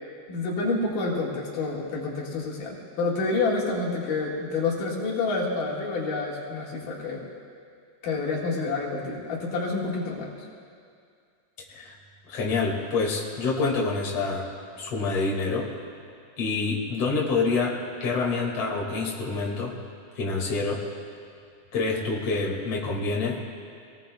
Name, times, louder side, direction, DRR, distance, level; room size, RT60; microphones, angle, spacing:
voice 1, 0.3-7.2 8.0-10.3, left 3 dB, 80° left, -4 dB, 3.5 m, -28 dB
voice 2, 12.3-14.4 14.7-15.7 16.4-19.7 20.1-20.8 21.7-23.4, left 4 dB, 50° left, -3 dB, 3.0 m, -27 dB
25.5 x 18.5 x 2.3 m, 2.3 s
omnidirectional pair, 3.7 m